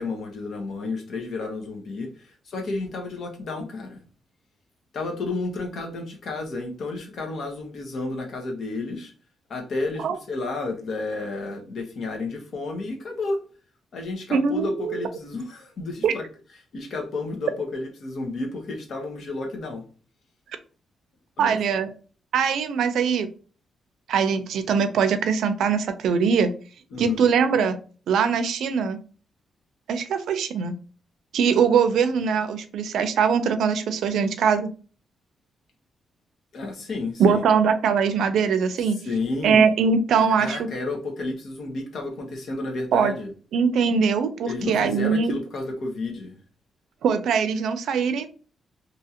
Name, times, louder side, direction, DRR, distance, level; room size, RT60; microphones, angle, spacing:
voice 1, 0.0-4.0 4.9-9.1 9.5-13.4 13.9-16.2 16.7-19.8 21.4-21.8 26.9-27.2 36.5-37.4 39.0-39.7 40.2-43.3 44.5-46.4, left 3 dB, 60° left, 3 dB, 0.9 m, -31 dB
voice 2, 14.3-15.0 16.0-16.1 21.4-21.9 22.3-23.3 24.1-26.5 27.0-27.8 28.1-29.0 29.9-30.7 31.3-34.7 37.2-39.0 39.4-40.7 42.9-43.1 43.5-45.3 47.0-48.3, right 6 dB, 85° right, 10 dB, 0.4 m, -22 dB
2.8 x 2.4 x 2.8 m, 0.38 s
cardioid pair, 120°, 0 cm